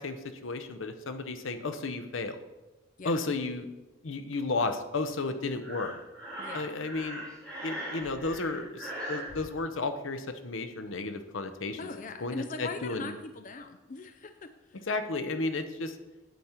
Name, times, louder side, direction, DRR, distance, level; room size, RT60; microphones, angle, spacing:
voice 1, 0.0-2.4 3.0-3.7 4.0-5.9 6.5-7.2 7.6-11.8 12.2-13.1 14.9-16.0, left 3 dB, 75° left, 9 dB, 0.8 m, -33 dB
Breathing, 5.6-9.3, right 1 dB, 5° left, 3.7 m, -40 dB
voice 2, 6.4-6.7 11.8-14.9, left 3 dB, 40° left, 8 dB, 0.4 m, -41 dB
9.2 x 8.1 x 4.4 m, 1.1 s
head